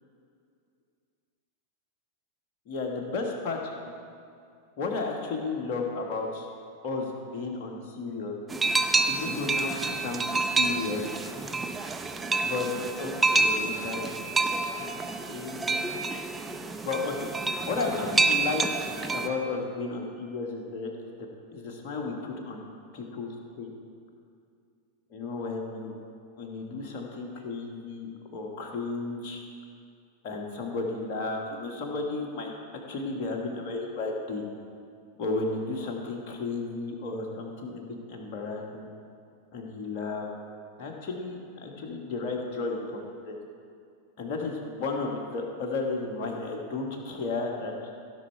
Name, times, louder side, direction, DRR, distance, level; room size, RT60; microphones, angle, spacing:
voice 1, 2.7-3.6 3.8-3.9 4.8-6.5 6.8-8.3 9.1-11.0 12.4-12.7 13.0-14.1 14.8-15.0 15.2-16.0 16.8-17.1 17.7-21.0 21.5-22.7 22.9-23.3 23.6-23.7 25.1-25.9 26.4-29.4 30.2-32.5 32.9-34.4 35.2-38.9 39.5-40.3 40.8-43.3 44.2-47.7, left 3 dB, 45° left, 1 dB, 1.5 m, -33 dB
sound 1, 8.5-19.3, right 3 dB, 10° right, 0.6 m, -28 dB
16.0 x 5.7 x 4.5 m, 2.3 s
figure-of-eight pair, 90°, 0 cm